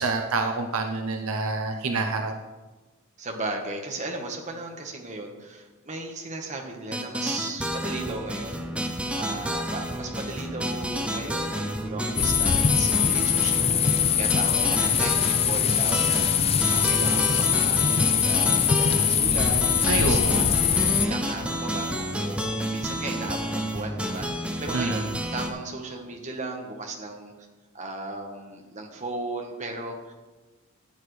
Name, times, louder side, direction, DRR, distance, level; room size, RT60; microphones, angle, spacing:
voice 1, 0.0-2.3 19.9-20.5 24.7-25.1, right 3 dB, 70° right, 4 dB, 0.8 m, -27 dB
voice 2, 3.2-8.7 9.1-13.6 13.9-17.9 18.2-20.6 21.0-27.3 27.7-30.1, right 2 dB, 35° right, 1 dB, 1.4 m, -36 dB
sound 1, 6.9-25.5, equal, 5° right, 0.6 m, -30 dB
sound 2, 12.2-21.1, left 8 dB, 25° left, 0.3 m, -22 dB
13.5 x 8.7 x 3.3 m, 1.2 s
head